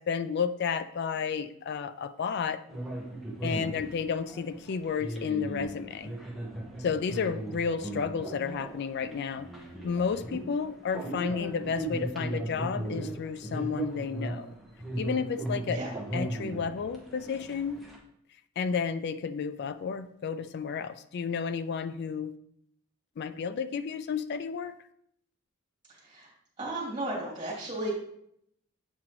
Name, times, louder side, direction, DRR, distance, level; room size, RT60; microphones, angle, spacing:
voice 1, 0.0-2.6 3.4-6.1 6.8-9.5 9.8-14.6 15.0-15.8 16.1-17.8 18.6-22.3 23.2-24.8, left 6 dB, 50° left, 12 dB, 0.3 m, -32 dB
sound 1, 2.7-18.0, right 1 dB, ahead, 1.0 m, -37 dB
voice 2, 26.6-27.9, right 1 dB, 20° right, -5 dB, 2.0 m, -34 dB
7.4 x 4.8 x 3.0 m, 0.72 s
head